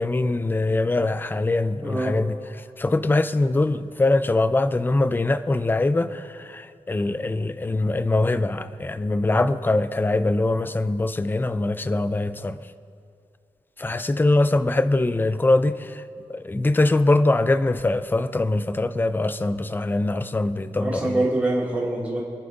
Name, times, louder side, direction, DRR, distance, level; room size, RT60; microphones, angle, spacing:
voice 1, 0.0-2.3 2.8-12.6 13.8-16.0 16.3-21.0, left 2 dB, 15° left, 0.4 m, -22 dB
voice 2, 1.8-2.1 20.8-22.2, right 1 dB, 10° right, 2.4 m, -24 dB
29.0 x 10.5 x 2.6 m
wide cardioid pair, 160°, 13 cm